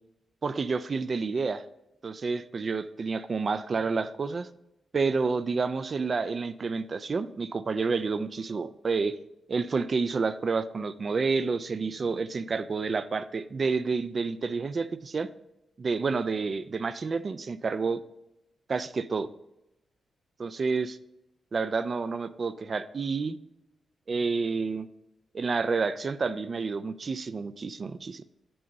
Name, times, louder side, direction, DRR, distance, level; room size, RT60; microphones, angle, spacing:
voice 1, 0.4-1.6 2.0-4.5 4.9-9.2 9.5-15.3 15.8-18.0 18.7-19.3 20.4-21.0 21.5-23.4 24.1-24.9 25.3-28.2, right 4 dB, 50° right, 13 dB, 0.3 m, -29 dB
7.7 x 2.8 x 5.2 m, 0.88 s
supercardioid pair, 55°, 0 cm